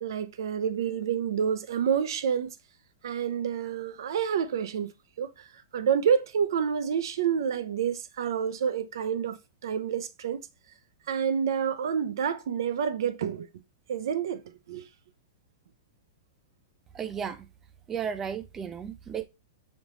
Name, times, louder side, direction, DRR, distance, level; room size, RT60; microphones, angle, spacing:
voice 1, 0.0-2.5 3.0-4.9 5.2-5.5 5.7-10.4 11.1-13.5 13.9-14.9, right 7 dB, 70° right, 0.5 m, -28 dB
voice 2, 16.9-17.5 17.9-19.2, right 7 dB, 15° right, 0.3 m, -34 dB
5.2 x 2.7 x 3.0 m
supercardioid pair, 165°, 2 cm